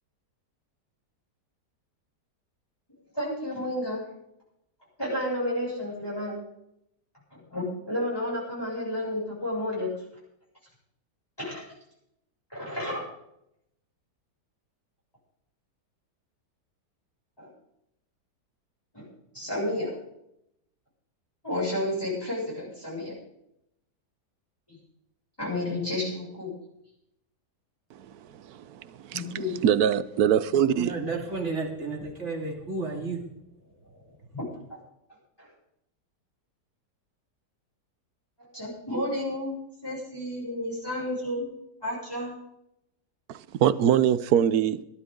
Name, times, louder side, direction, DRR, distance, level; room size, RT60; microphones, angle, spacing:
voice 1, 3.1-4.0 5.0-6.4 7.3-9.9 11.4-11.6 12.5-13.1 17.4-17.5 18.9-19.1 19.3-19.9 21.4-23.1 24.7-24.8 25.4-26.5 29.1-29.5 34.3-34.5 35.4-35.5 38.4-39.5 39.8-41.5 41.8-42.3, left 1 dB, 15° left, 7.3 m, -31 dB
voice 2, 28.5-28.8 29.1-29.2 29.6-30.9 43.3-44.8, right 9 dB, 65° right, 1.2 m, -23 dB
voice 3, 30.7-33.2, right 3 dB, 40° right, 2.9 m, -32 dB
20.5 x 13.0 x 3.8 m
omnidirectional pair, 1.8 m